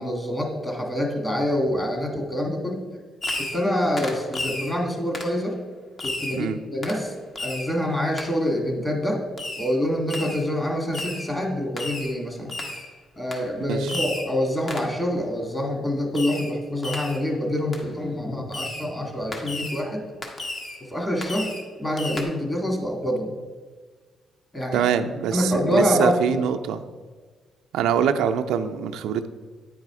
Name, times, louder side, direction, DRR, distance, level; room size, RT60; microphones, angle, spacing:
voice 1, 0.0-2.8 3.5-5.6 6.0-7.1 7.4-9.2 9.6-12.5 13.2-20.0 20.9-21.5 21.8-23.3 24.5-24.9 25.3-26.4, left 1 dB, 15° left, 2 dB, 1.8 m, -26 dB
Fireworks, 3.2-3.7 4.0-4.7 5.1-5.4 6.0-6.4 6.8-7.0 7.4-7.7 8.2-8.3 9.4-9.7 10.1-10.5 10.9-11.3 11.8-12.1 12.5-12.9 13.3-13.5 13.9-14.3 14.7-15.0 16.1-16.5 16.8-17.2 17.7-17.8 18.5-18.9 19.3-19.8 20.2-20.8 21.2-21.7 22.0-22.2, left 2 dB, 40° left, 1.2 m, -33 dB
voice 2, 24.7-26.8 27.7-29.3, right 8 dB, 85° right, 7 dB, 0.4 m, -24 dB
9.2 x 4.8 x 4.7 m, 1.4 s
cardioid pair, 90°, 0 cm